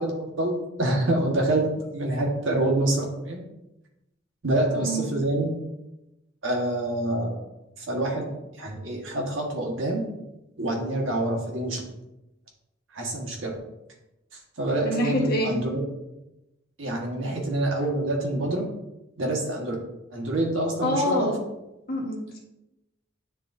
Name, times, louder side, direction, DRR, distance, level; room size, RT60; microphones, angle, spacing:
voice 1, 0.0-1.7 1.9-3.4 4.4-5.5 6.4-7.4 7.8-8.3 8.6-10.0 10.6-11.8 12.9-13.6 14.3-15.8 16.8-18.6 19.2-19.7 20.1-21.4, right 1 dB, 75° right, -1 dB, 1.4 m, -26 dB
voice 2, 4.7-5.1 14.8-15.5 20.8-21.4 21.9-22.4, equal, 50° left, -2 dB, 1.4 m, -26 dB
9.4 x 3.8 x 2.6 m, 0.94 s
head